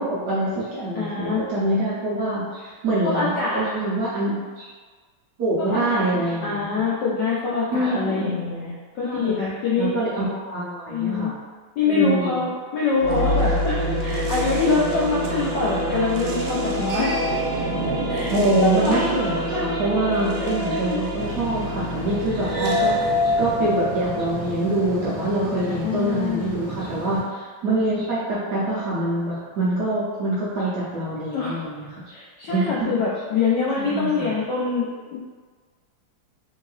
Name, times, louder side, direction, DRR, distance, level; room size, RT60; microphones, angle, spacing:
voice 1, 0.0-4.7 5.4-6.6 7.7-8.3 9.0-9.4 9.8-11.3 11.9-12.4 13.4-13.5 18.3-22.9 23.2-32.0 32.5-32.9 33.8-34.3, right 1 dB, 65° right, -9 dB, 1.0 m, -25 dB
voice 2, 0.9-1.4 3.0-3.6 5.6-9.9 10.9-11.3 11.8-17.2 18.1-18.3 18.6-19.0 19.5-19.6 20.4-21.0 25.5-26.6 31.3-31.6 32.1-34.9 35.1-35.2, left 4 dB, 80° left, -6 dB, 1.0 m, -25 dB
sound 1, 13.0-25.1, equal, 85° right, 1.6 m, -26 dB
sound 2, 21.1-27.2, equal, 35° right, 1.2 m, -34 dB
3.6 x 2.7 x 3.1 m, 1.5 s
omnidirectional pair, 2.4 m